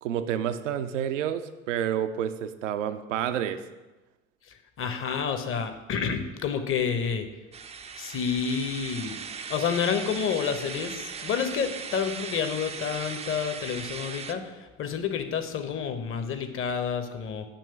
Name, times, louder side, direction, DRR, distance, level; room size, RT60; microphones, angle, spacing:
voice 1, 0.0-3.6, right 9 dB, 75° right, 10 dB, 0.5 m, -29 dB
voice 2, 4.8-7.3 8.0-9.2 9.5-17.4, left 7 dB, 35° left, 8 dB, 0.8 m, -29 dB
sound 1, 7.5-14.3, right 6 dB, 20° right, 0.4 m, -38 dB
8.5 x 3.0 x 5.7 m, 1.1 s
figure-of-eight pair, 60°, 38 cm